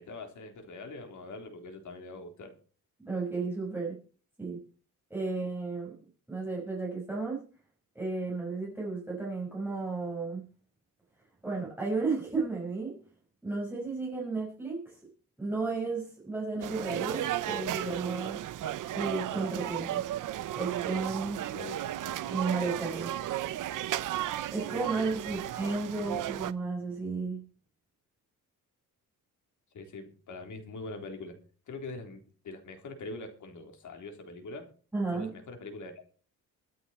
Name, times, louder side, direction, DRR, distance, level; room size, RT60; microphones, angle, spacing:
voice 1, 0.0-2.5 21.5-22.2 25.3-25.4 26.0-26.2 29.7-31.4 31.7-34.7 35.1-35.9, left 3 dB, 60° left, 4 dB, 3.8 m, -43 dB
voice 2, 3.0-4.0 4.4-4.6 5.1-5.9 6.3-7.4 8.0-10.4 11.4-13.0 13.4-15.1 15.4-18.4 18.9-20.0 20.5-21.5 22.3-23.2 24.5-27.4 34.9-35.3, right 3 dB, 5° right, -4 dB, 5.5 m, -33 dB
sound 1, 16.6-26.5, right 12 dB, 65° right, 0.9 m, -34 dB
24.0 x 8.0 x 4.4 m, 0.40 s
cardioid pair, 140°, 34 cm